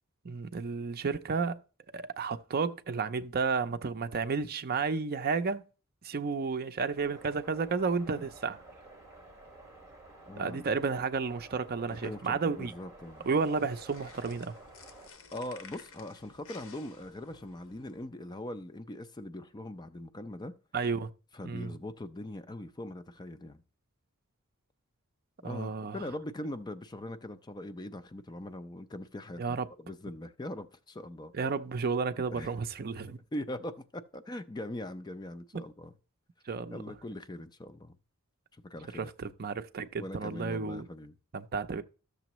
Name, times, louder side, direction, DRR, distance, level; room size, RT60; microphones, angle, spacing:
voice 1, 0.2-1.6 1.9-5.6 6.0-8.6 10.4-12.7 13.2-14.5 20.7-21.1 21.4-21.8 25.4-26.0 29.4-29.7 31.3-33.2 35.5-35.6 36.5-36.8 38.9-40.9 41.3-41.8, right 4 dB, 45° right, 0.5 m, -32 dB
sound 1, 6.9-15.1, right 2 dB, 15° right, 2.6 m, -52 dB
voice 2, 10.3-10.6 11.9-13.3 15.3-20.5 21.3-23.6 25.4-31.3 32.3-32.5 33.3-35.9 36.7-38.0 38.7-39.1 40.0-41.1, left 1 dB, 20° left, 0.5 m, -41 dB
sound 2, 13.0-18.0, left 5 dB, 65° left, 1.1 m, -54 dB
13.0 x 6.8 x 3.0 m
head